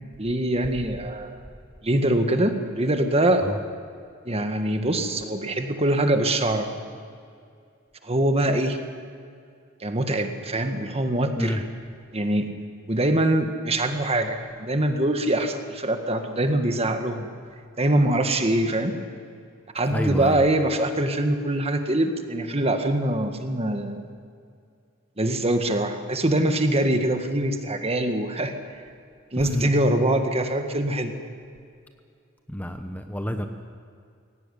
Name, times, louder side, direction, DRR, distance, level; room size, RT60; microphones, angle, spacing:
voice 1, 0.2-1.4 1.8-3.5 4.3-6.7 8.0-8.8 9.8-11.6 12.1-12.5 12.9-17.3 17.8-18.9 19.7-24.0 25.2-28.6 29.3-31.1, right 1 dB, 30° right, 6 dB, 1.8 m, -23 dB
voice 2, 19.9-20.4 29.5-29.7 32.5-33.5, equal, 10° left, 6 dB, 1.0 m, -28 dB
21.5 x 17.5 x 10.0 m, 2.3 s
head